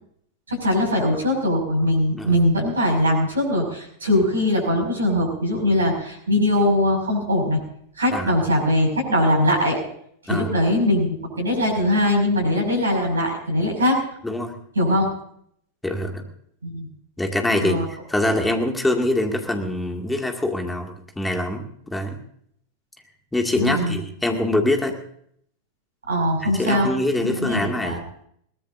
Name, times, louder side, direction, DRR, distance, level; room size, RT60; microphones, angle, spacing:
voice 1, 0.5-7.6 8.0-9.8 10.3-14.0 14.7-15.1 16.6-16.9 17.6-17.8 23.6-24.0 26.1-26.9 27.2-28.0, left 1 dB, 75° right, 1 dB, 6.4 m, -21 dB
voice 2, 15.8-16.2 17.2-22.2 23.3-25.0 26.4-28.0, left 1 dB, 5° left, 3 dB, 2.3 m, -24 dB
22.0 x 19.0 x 2.7 m, 0.67 s
figure-of-eight pair, 90°, 0 cm